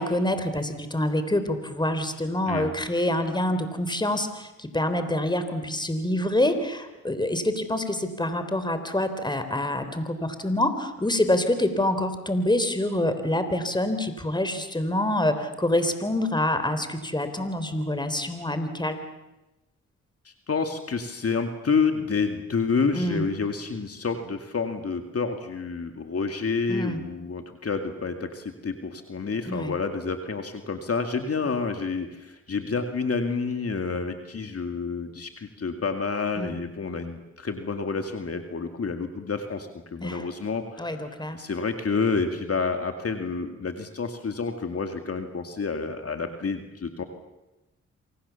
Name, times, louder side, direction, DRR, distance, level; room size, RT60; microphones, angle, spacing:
voice 1, 0.0-19.0 22.9-23.3 26.7-27.0 29.5-29.7 36.4-36.6 40.0-40.2 40.8-41.4, left 1 dB, 15° left, 9 dB, 3.7 m, -26 dB
voice 2, 20.2-47.0, left 4 dB, 50° left, 6 dB, 2.3 m, -29 dB
28.5 x 24.5 x 7.2 m, 1.0 s
cardioid pair, 70°, 31 cm